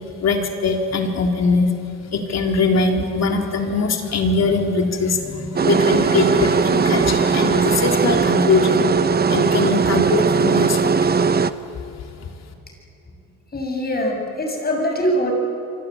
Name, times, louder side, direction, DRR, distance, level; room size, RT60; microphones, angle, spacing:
voice 1, 0.2-1.7 2.1-8.9 9.3-11.1, left 4 dB, 60° left, 3 dB, 3.7 m, -21 dB
sound 1, 5.6-11.5, right 5 dB, 30° right, 0.9 m, -18 dB
voice 2, 13.5-15.3, equal, 30° left, 2 dB, 6.7 m, -22 dB
27.0 x 24.0 x 8.7 m, 2.9 s
cardioid pair, 90°, 30 cm